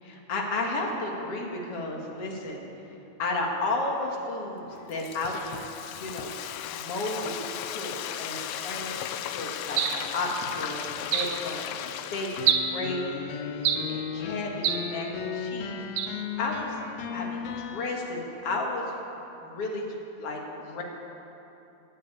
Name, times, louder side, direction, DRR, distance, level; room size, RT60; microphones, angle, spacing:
voice 1, 0.0-2.6 3.2-5.6 6.0-6.4 6.7-16.0 16.4-16.8 17.1-18.8 19.4-19.9 20.2-20.8, left 2 dB, 55° left, 0 dB, 2.5 m, -33 dB
Frying (food), 4.6-12.5, left 10 dB, 90° left, 1.4 m, -36 dB
sound 1, 9.8-10.1 11.1-11.4 12.5-12.8 13.6-14.0 14.6-14.9 16.0-16.2, right 8 dB, 75° right, 2.2 m, -26 dB
sound 2, 12.4-17.9, left 7 dB, 75° left, 1.8 m, -35 dB
15.0 x 8.9 x 8.6 m, 2.9 s
omnidirectional pair, 3.4 m